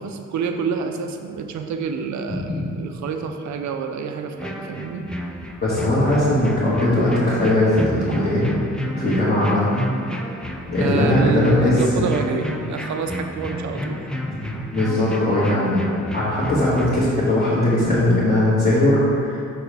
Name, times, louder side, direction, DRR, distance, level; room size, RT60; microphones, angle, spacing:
voice 1, 0.0-2.5 2.8-5.1 10.8-14.1, right 6 dB, 70° right, 5 dB, 0.6 m, -27 dB
sound 1, 4.4-17.0, equal, 5° left, 0.3 m, -31 dB
voice 2, 5.6-8.5 9.0-9.8 10.7-12.0 14.7-15.8 16.1-19.4, left 1 dB, 30° left, -10 dB, 1.4 m, -19 dB
6.3 x 5.8 x 3.3 m, 2.6 s
wide cardioid pair, 145°, 29 cm